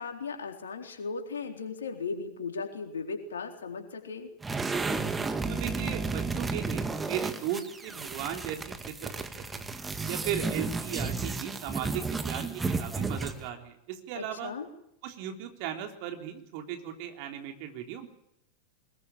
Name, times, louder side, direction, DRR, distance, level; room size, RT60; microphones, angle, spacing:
voice 1, 0.0-4.3 14.2-14.7, left 4 dB, 75° left, 4 dB, 4.0 m, -37 dB
sound 1, 4.4-13.5, right 3 dB, 15° right, 1.9 m, -33 dB
voice 2, 5.5-8.7 9.0-9.3 9.5-9.7 10.0-14.5 15.0-18.1, right 10 dB, 50° right, 4 dB, 3.7 m, -37 dB
22.5 x 21.0 x 8.7 m, 0.77 s
figure-of-eight pair, 90°, 0 cm